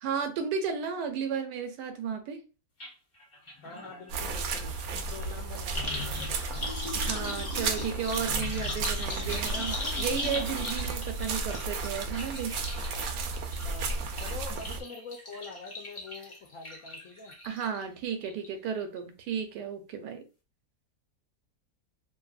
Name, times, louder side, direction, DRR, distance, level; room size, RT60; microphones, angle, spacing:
voice 1, 0.0-2.4 6.9-12.6 14.5-14.6 17.4-20.3, right 6 dB, 85° right, 1.2 m, -34 dB
sound 1, 2.8-2.9 3.2-17.8 18.2-18.7 19.0-19.1, left 2 dB, 40° left, 0.4 m, -39 dB
voice 2, 3.6-6.7 11.3-11.4 13.6-13.9 14.2-17.4, left 4 dB, 70° left, 0.8 m, -45 dB
sound 2, 4.1-14.8, right 4 dB, 70° right, 0.9 m, -33 dB
2.8 x 2.6 x 2.3 m
omnidirectional pair, 1.8 m